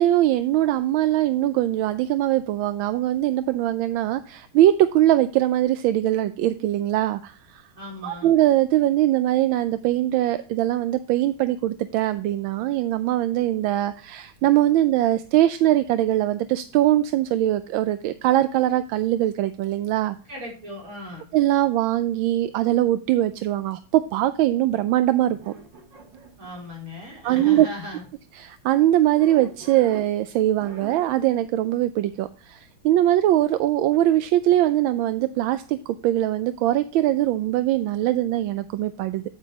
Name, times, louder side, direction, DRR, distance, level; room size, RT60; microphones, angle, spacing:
voice 1, 0.0-7.6 8.0-20.2 21.3-25.5 27.2-27.7 28.3-39.2, right 13 dB, 85° right, 12 dB, 1.4 m, -21 dB
voice 2, 7.8-8.3 20.3-21.3 26.4-28.0, left 1 dB, 45° right, -3 dB, 4.7 m, -37 dB
sound 1, 25.3-26.8 27.1-28.4 29.1-30.2 30.6-31.2, right 4 dB, 65° right, 2.4 m, -43 dB
9.0 x 8.9 x 2.9 m, 0.36 s
omnidirectional pair, 2.1 m